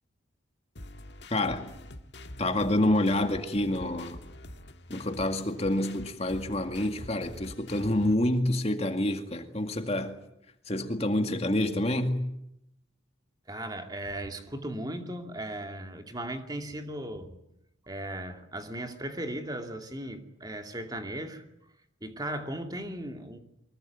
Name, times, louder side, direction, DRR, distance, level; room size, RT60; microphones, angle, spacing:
sound 1, 0.8-8.2, left 1 dB, 55° left, 1.8 m, -45 dB
voice 1, 1.3-1.7 2.4-4.2 4.9-10.2 10.7-12.2, left 1 dB, 30° left, 2.1 m, -27 dB
voice 2, 13.5-17.4 17.9-21.4 22.0-23.4, right 1 dB, 20° right, 2.5 m, -37 dB
24.5 x 22.0 x 9.4 m
head